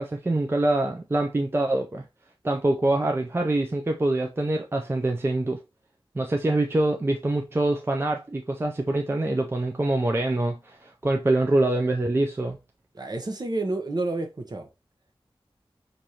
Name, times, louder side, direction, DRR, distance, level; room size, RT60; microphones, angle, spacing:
voice 1, 0.0-2.0 2.4-5.6 6.2-12.6, right 2 dB, 25° right, 0.4 m, -25 dB
voice 2, 12.9-14.7, right 2 dB, 45° right, 0.8 m, -29 dB
4.7 x 2.6 x 2.7 m
wide cardioid pair, 80°, 10 cm